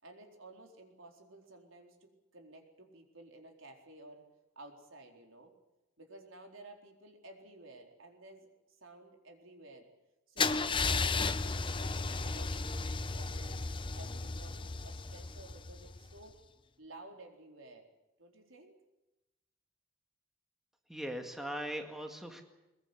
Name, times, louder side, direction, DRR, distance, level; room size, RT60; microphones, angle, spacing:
voice 1, 0.0-4.3 4.6-5.5 6.0-9.9 10.3-13.6 13.9-16.4 16.8-17.9 18.2-18.8, right 2 dB, 75° right, 3 dB, 4.2 m, -54 dB
Car / Engine starting / Idling, 10.4-16.2, left 4 dB, 25° left, 0.8 m, -34 dB
voice 2, 20.9-22.4, equal, ahead, 3 dB, 2.0 m, -39 dB
22.0 x 21.5 x 8.2 m, 0.97 s
head